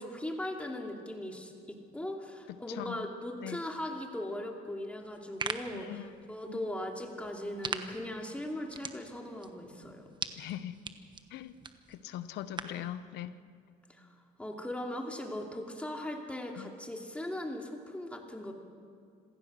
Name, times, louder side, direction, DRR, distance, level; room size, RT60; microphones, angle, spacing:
voice 1, 0.0-5.9 6.3-10.1 12.7-12.8 14.0-14.1 14.4-18.5, left 1 dB, 5° left, 1 dB, 2.8 m, -39 dB
voice 2, 2.7-3.1 3.4-3.6 5.7-6.7 10.4-10.8 11.3-11.5 11.9-13.3 16.6-16.7, left 12 dB, 80° left, 13 dB, 0.9 m, -41 dB
sound 1, 5.1-12.9, right 5 dB, 25° right, 1.2 m, -43 dB
26.5 x 16.5 x 6.4 m, 2.2 s
cardioid pair, 110°, 17 cm